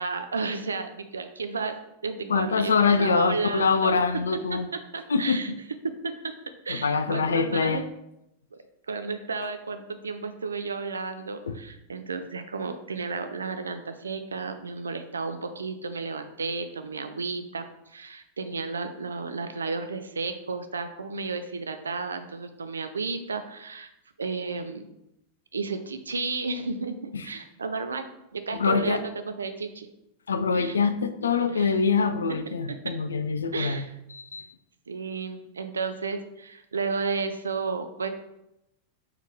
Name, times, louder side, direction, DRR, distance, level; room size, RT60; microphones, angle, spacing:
voice 1, 0.0-1.8 2.0-4.0 4.5-5.5 5.8-6.1 6.7-7.8 8.9-23.9 24.2-24.9 25.5-29.9 30.5-30.8 31.5-31.8 32.3-32.5 32.8-32.9 33.5-34.0 34.9-38.1, right 4 dB, 75° right, 8 dB, 0.4 m, -33 dB
voice 2, 2.3-4.7 5.1-5.4 6.7-7.8 11.5-11.6 27.1-27.3 28.6-29.0 30.3-33.8 34.1-34.5, left 5 dB, 70° left, 10 dB, 0.3 m, -24 dB
4.2 x 3.0 x 3.9 m, 0.85 s
figure-of-eight pair, 90°, 0 cm